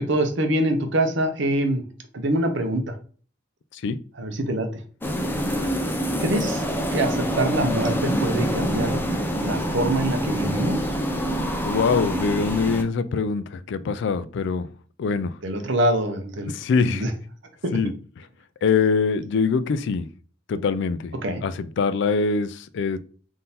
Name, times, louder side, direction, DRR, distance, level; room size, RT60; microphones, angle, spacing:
voice 1, 0.0-1.8 2.1-2.9 4.2-4.7 6.2-6.7 6.9-9.0 9.4-10.9 15.4-16.5 16.8-17.1 21.2-21.4, right 1 dB, 65° right, 0.8 m, -24 dB
sound 1, 5.0-12.8, equal, 10° left, 0.5 m, -26 dB
voice 2, 11.6-14.7 15.0-15.4 16.5-17.0 17.7-18.3 18.6-20.1 20.5-21.1 21.4-23.0, left 5 dB, 65° left, 0.3 m, -24 dB
3.7 x 2.7 x 4.1 m
head